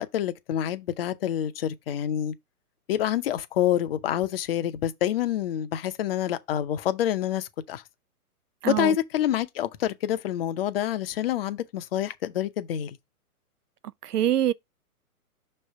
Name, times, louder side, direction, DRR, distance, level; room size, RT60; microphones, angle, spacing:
voice 1, 0.0-2.3 2.9-7.8 8.7-13.0, left 11 dB, 40° left, 0.7 m, -27 dB
voice 2, 8.6-9.0 14.0-14.5, right 11 dB, 80° right, 0.6 m, -24 dB
6.1 x 3.3 x 5.5 m
hypercardioid pair, 130°, 46 cm